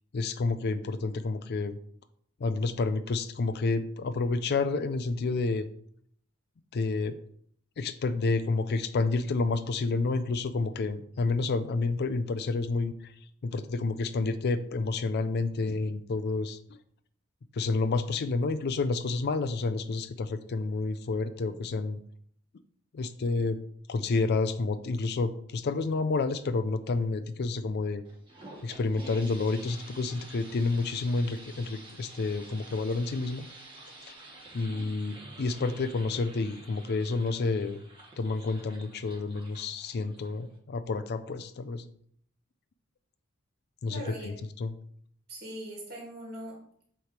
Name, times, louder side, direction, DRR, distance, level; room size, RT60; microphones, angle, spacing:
voice 1, 0.1-1.8 2.4-5.7 6.7-7.2 7.8-13.1 13.4-16.8 17.5-22.0 22.9-23.6 23.9-28.0 28.6-33.5 34.1-34.2 34.5-37.8 38.2-41.9 43.8-44.7, left 3 dB, 50° left, 12 dB, 0.4 m, -29 dB
sound 1, 28.0-40.6, right 2 dB, 25° right, 1.4 m, -50 dB
voice 2, 43.9-44.3 45.3-46.8, right 1 dB, 45° right, -2 dB, 2.5 m, -42 dB
8.2 x 3.1 x 4.3 m, 0.63 s
head